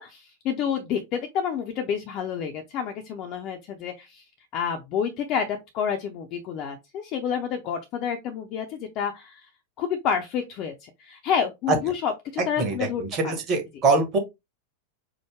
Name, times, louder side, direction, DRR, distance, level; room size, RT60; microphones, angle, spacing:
voice 1, 0.0-4.2 4.5-9.5 9.8-13.3, left 7 dB, 40° left, 0.7 m, -29 dB
voice 2, 12.6-14.2, right 3 dB, 35° right, 1.6 m, -24 dB
4.7 x 2.2 x 3.6 m
figure-of-eight pair, 90°, 0 cm